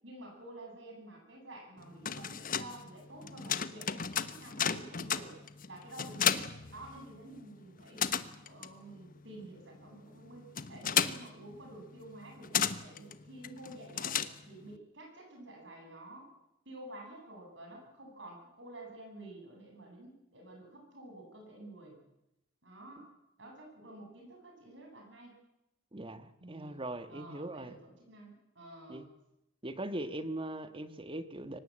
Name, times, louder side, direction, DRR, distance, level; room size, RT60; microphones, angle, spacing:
voice 1, 0.0-5.4 5.7-8.1 8.4-16.3 16.6-22.1 22.6-23.1 23.4-25.4 26.4-26.8 27.1-29.1, right 1 dB, 70° right, 1 dB, 7.8 m, -50 dB
sound 1, 1.8-7.4 7.7-14.7, left 8 dB, 45° left, 1.1 m, -35 dB
voice 2, 25.9-27.8 28.9-29.0 29.6-31.6, right 1 dB, 25° right, 11 dB, 1.5 m, -40 dB
24.5 x 19.0 x 8.8 m, 0.86 s
head